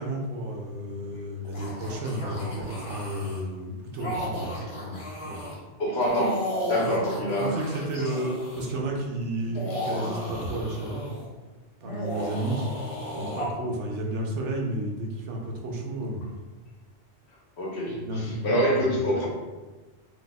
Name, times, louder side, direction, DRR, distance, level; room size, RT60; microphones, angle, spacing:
voice 1, 0.0-5.4 6.7-6.9 7.4-11.0 11.8-12.7 13.2-16.2 17.9-19.0, right 1 dB, 85° right, 0 dB, 1.0 m, -32 dB
sound 1, 1.4-3.4 3.9-5.6 6.0-8.7 9.4-11.3 11.8-13.5, left 1 dB, 35° left, 0.7 m, -35 dB
voice 2, 5.8-7.7 7.9-8.3 17.6-19.3, equal, 70° left, -3 dB, 1.1 m, -26 dB
2.7 x 2.2 x 3.9 m, 1.2 s
omnidirectional pair, 1.2 m